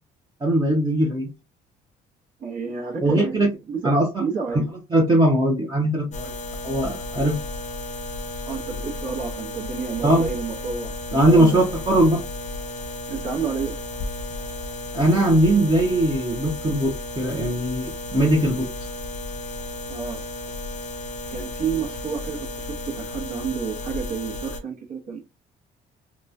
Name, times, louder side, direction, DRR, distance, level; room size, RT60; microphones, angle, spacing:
voice 1, 0.4-1.3 3.0-3.5 3.8-4.2 4.5-4.6 4.9-6.3 6.6-7.4 10.0-10.2 11.1-12.2 14.9-18.7, right 1 dB, 25° right, 0.9 m, -20 dB
voice 2, 2.4-3.3 3.7-3.9 4.2-4.7 8.5-11.6 13.1-13.8 19.9-20.2 21.3-25.2, right 6 dB, 55° right, 1.1 m, -30 dB
sound 1, 6.1-24.6, left 2 dB, 45° left, 0.7 m, -33 dB
3.0 x 2.3 x 2.6 m
cardioid pair, 110°, 17 cm